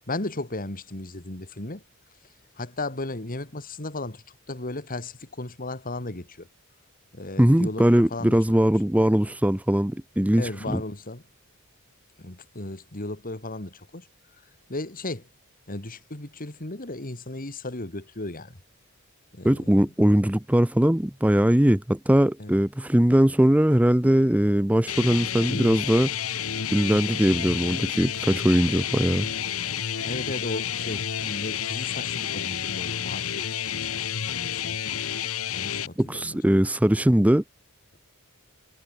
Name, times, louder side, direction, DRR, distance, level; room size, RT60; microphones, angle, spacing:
voice 1, 0.1-1.8 2.6-6.5 7.1-8.7 10.3-11.2 12.2-14.1 14.7-15.3 15.7-18.6 19.3-19.9 22.4-22.5 30.0-34.9 35.5-36.4, left 2 dB, 40° left, 2.4 m, -35 dB
voice 2, 7.4-10.8 19.4-26.2 26.7-29.3 36.0-37.4, right 1 dB, 5° right, 0.6 m, -21 dB
sound 1, 24.9-35.9, left 9 dB, 70° left, 1.3 m, -30 dB
head